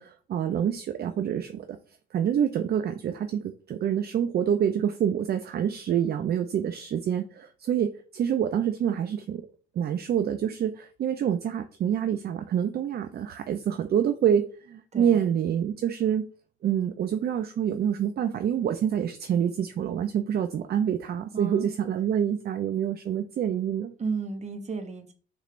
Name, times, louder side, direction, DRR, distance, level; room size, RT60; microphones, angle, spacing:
voice 1, 0.0-1.8 2.1-9.4 9.8-16.3 16.6-23.9, right 9 dB, 50° right, 7 dB, 0.5 m, -27 dB
voice 2, 14.9-15.4 21.3-21.7 24.0-25.1, right 4 dB, 35° right, 7 dB, 0.9 m, -33 dB
6.5 x 3.1 x 2.5 m, 0.39 s
cardioid pair, 90°, 20 cm